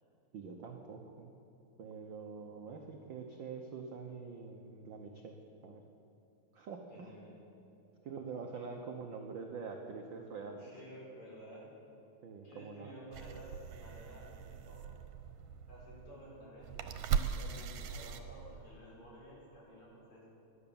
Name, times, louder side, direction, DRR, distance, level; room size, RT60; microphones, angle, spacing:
voice 1, 0.3-1.3 1.8-5.3 5.6-5.8 6.5-7.1 8.0-10.7 12.2-12.9, right 5 dB, 70° right, 2 dB, 1.1 m, -45 dB
voice 2, 6.9-7.3 10.6-11.7 12.4-14.9 15.7-17.0 17.4-20.2, equal, 45° left, -5 dB, 5.9 m, -53 dB
sound 1, 13.1-18.8, right 8 dB, 85° right, 2.4 m, -39 dB
17.5 x 11.5 x 7.0 m, 2.8 s
omnidirectional pair, 3.4 m